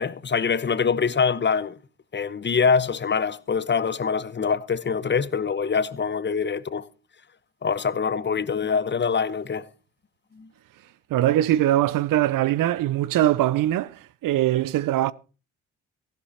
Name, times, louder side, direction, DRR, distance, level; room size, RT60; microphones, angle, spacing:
voice 1, 0.0-1.7 2.1-6.9 7.6-9.6 10.4-10.5, left 6 dB, 30° left, 1.1 m, -24 dB
voice 2, 11.1-13.9 14.2-15.1, right 13 dB, 65° right, 0.8 m, -21 dB
15.5 x 12.0 x 4.3 m
hypercardioid pair, 55°, 35 cm